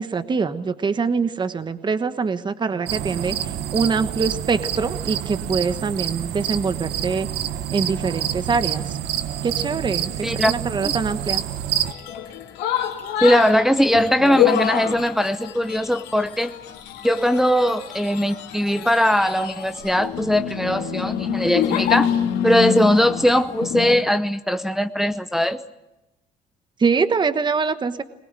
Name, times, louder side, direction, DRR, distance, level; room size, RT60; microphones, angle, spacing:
voice 1, 0.0-3.4 3.7-7.3 7.7-8.9 9.4-11.4 26.8-28.0, right 5 dB, 25° right, 11 dB, 1.2 m, -24 dB
sound 1, 2.9-11.9, right 10 dB, 75° right, 1.2 m, -27 dB
voice 2, 10.2-10.5 10.8-10.9 13.2-16.6 17.0-22.1 22.4-25.6, equal, ahead, 9 dB, 0.8 m, -20 dB
sound 2, 11.9-23.9, left 9 dB, 90° left, 2.6 m, -26 dB
22.0 x 19.5 x 9.0 m, 0.95 s
cardioid pair, 110°, 17 cm